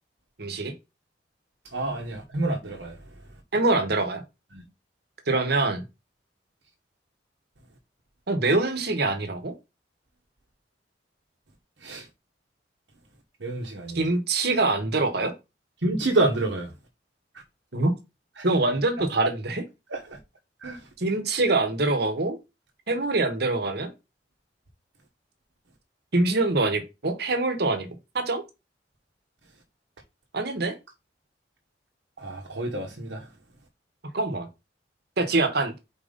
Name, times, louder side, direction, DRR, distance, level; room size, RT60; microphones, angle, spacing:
voice 1, 0.4-0.7 3.5-4.2 5.3-5.8 8.3-9.5 13.9-15.3 17.7-17.9 18.4-19.6 21.0-22.4 22.9-23.9 26.1-27.9 28.1-28.4 30.3-30.7 34.1-34.5 35.2-35.7, right 2 dB, 60° right, 1.3 m, -24 dB
voice 2, 1.7-3.0 4.5-4.6 11.8-12.1 13.4-14.1 15.8-16.7 18.4-18.5 19.9-20.0 20.6-20.8 32.2-33.2, right 2 dB, 80° right, 1.3 m, -28 dB
4.6 x 4.0 x 5.2 m
head